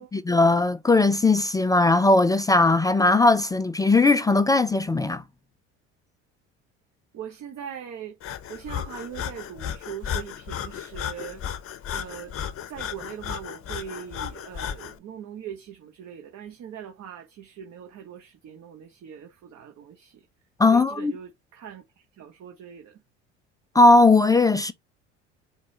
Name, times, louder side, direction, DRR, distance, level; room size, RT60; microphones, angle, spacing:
voice 1, 0.1-5.2 20.6-21.1 23.7-24.7, left 2 dB, 10° left, 0.3 m, -18 dB
voice 2, 7.1-8.2 8.5-11.4 11.9-12.4 12.7-20.2 20.6-23.0, right 9 dB, 45° right, 1.1 m, -41 dB
Breathing, 8.2-15.0, left 9 dB, 40° left, 0.7 m, -34 dB
5.1 x 2.2 x 4.0 m
hypercardioid pair, 65°, 36 cm